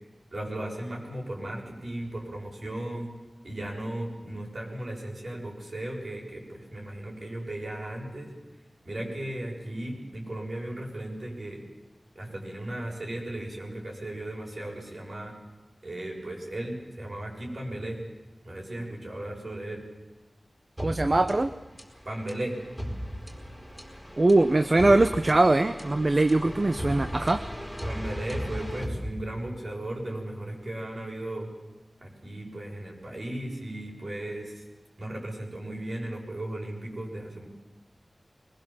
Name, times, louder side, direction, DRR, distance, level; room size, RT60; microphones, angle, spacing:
voice 1, 0.3-3.1 3.4-8.3 8.8-11.6 12.1-15.3 15.8-18.0 18.4-19.8 22.0-22.6 26.4-26.5 27.8-31.5 32.0-34.6 35.0-37.5, right 1 dB, 60° right, -1 dB, 6.7 m, -36 dB
sound 1, 20.8-29.7, equal, 10° right, 4.7 m, -37 dB
voice 2, 20.8-21.5 24.2-27.4, right 2 dB, 40° right, 9 dB, 0.8 m, -22 dB
23.0 x 21.0 x 7.5 m, 1.2 s
wide cardioid pair, 75°, 0 cm